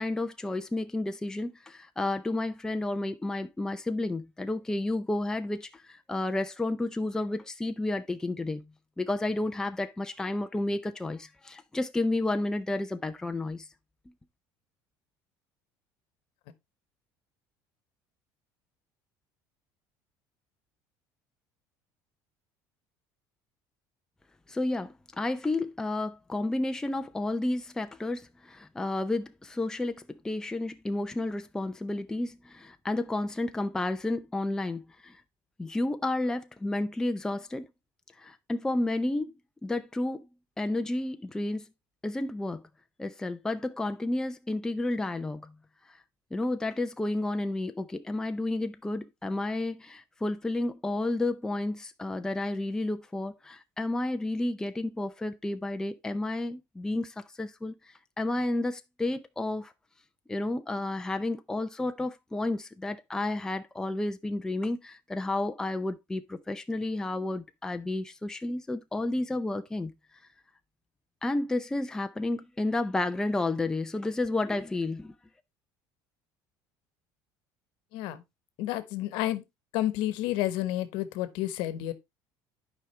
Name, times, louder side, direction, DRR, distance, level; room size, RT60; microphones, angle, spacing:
voice 1, 0.0-8.6 9.0-13.7 24.5-35.2 35.6-37.7 38.2-39.3 39.6-40.3 40.6-41.6 42.0-42.6 43.0-45.5 46.3-57.7 58.2-59.7 60.3-69.9 71.2-75.1, left 2 dB, 5° left, 0.6 m, -31 dB
voice 2, 78.6-79.4 79.7-81.9, left 14 dB, 75° left, 1.1 m, -30 dB
11.0 x 5.1 x 3.2 m
cardioid pair, 135°, 8 cm